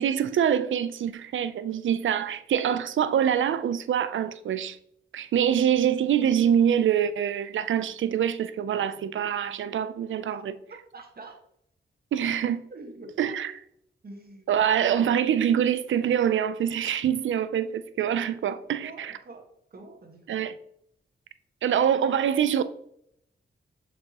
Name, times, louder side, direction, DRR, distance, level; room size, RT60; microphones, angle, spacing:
voice 1, 0.0-4.8 5.1-10.5 12.1-12.7 13.2-13.5 14.5-19.1 20.3-20.5 21.6-22.6, right 9 dB, 70° right, 0.5 m, -25 dB
voice 2, 10.9-11.4 12.7-13.4 14.0-14.6 18.8-20.4, right 2 dB, 50° right, 1.4 m, -45 dB
6.6 x 4.9 x 2.9 m
cardioid pair, 60°, 21 cm